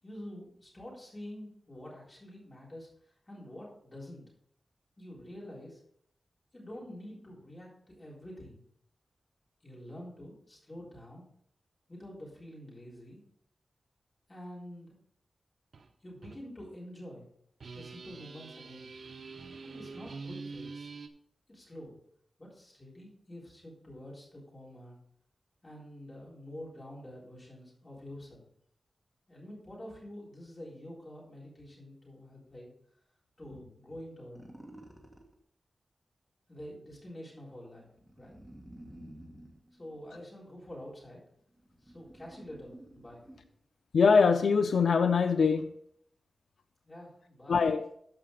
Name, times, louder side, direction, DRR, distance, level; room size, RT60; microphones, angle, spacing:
voice 1, 0.0-4.2 5.0-5.8 6.5-8.6 9.6-11.2 11.9-13.2 14.3-14.9 16.0-17.3 17.7-18.9 19.6-20.9 21.5-21.9 22.4-25.0 25.6-28.4 29.3-32.7 33.4-34.5 36.5-37.9 38.1-38.4 39.7-41.2 41.8-43.2 46.8-47.6, left 1 dB, 25° left, 3.7 m, -47 dB
sound 1, 15.7-15.9 16.2-16.4 17.6-21.1, right 4 dB, 70° right, 0.7 m, -45 dB
sound 2, 34.3-35.3 37.7-40.5 41.2-43.6, right 1 dB, 5° right, 1.5 m, -52 dB
voice 2, 43.9-45.7 47.5-47.8, left 5 dB, 80° left, 0.4 m, -23 dB
13.5 x 5.0 x 3.9 m
wide cardioid pair, 155°, 0 cm